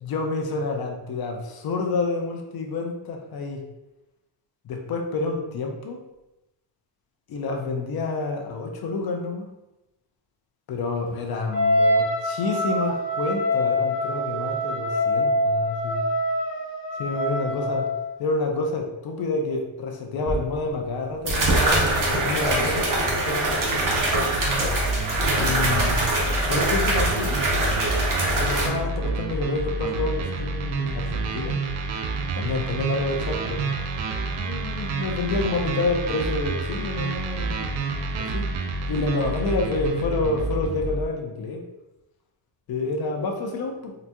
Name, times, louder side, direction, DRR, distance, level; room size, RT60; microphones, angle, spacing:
voice 1, 0.0-3.6 4.6-6.0 7.3-9.5 10.7-16.0 16.9-17.9 18.2-24.0 25.4-26.0 26.5-27.4 28.4-31.6 32.3-33.7 34.4-38.5 38.9-41.6 42.7-44.0, left 3 dB, 55° left, 2 dB, 0.7 m, -28 dB
Wind instrument woodwind instrument, 11.5-18.1, equal, 25° left, 0.9 m, -25 dB
sound 1, 20.3-20.4 21.3-28.7, right 2 dB, 45° right, 0.9 m, -23 dB
sound 2, 24.3-41.1, right 3 dB, 90° right, 0.6 m, -29 dB
3.9 x 2.8 x 2.3 m, 0.95 s
cardioid pair, 135°, 45 cm